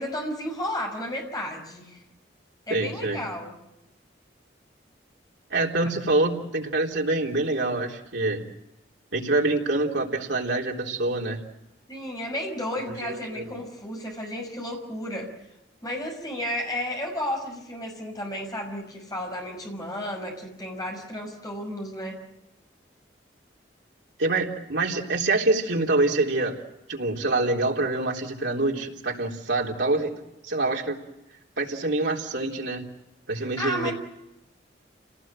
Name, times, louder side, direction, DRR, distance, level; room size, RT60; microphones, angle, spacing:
voice 1, 0.0-2.0 2.7-3.5 11.9-15.3 15.8-22.2 33.4-33.9, left 1 dB, 20° left, 2 dB, 5.8 m, -33 dB
voice 2, 2.7-3.2 5.5-8.4 9.1-11.4 13.0-13.6 24.2-26.6 26.9-31.0 31.6-32.8 33.3-33.9, right 2 dB, 75° right, -1 dB, 3.7 m, -26 dB
29.0 x 18.5 x 7.7 m, 0.92 s
head